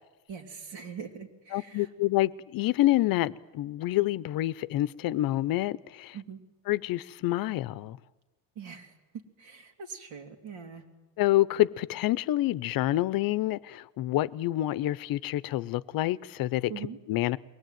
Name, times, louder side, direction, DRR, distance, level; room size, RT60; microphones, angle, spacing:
voice 1, 0.3-1.9 6.1-6.4 8.5-8.9 9.4-10.9 16.7-17.0, right 6 dB, 70° right, 3.2 m, -42 dB
voice 2, 1.5-6.2 6.7-8.0 11.2-16.7 17.1-17.4, left 15 dB, 55° left, 0.7 m, -27 dB
23.0 x 18.5 x 9.3 m
cardioid pair, 135°, 41 cm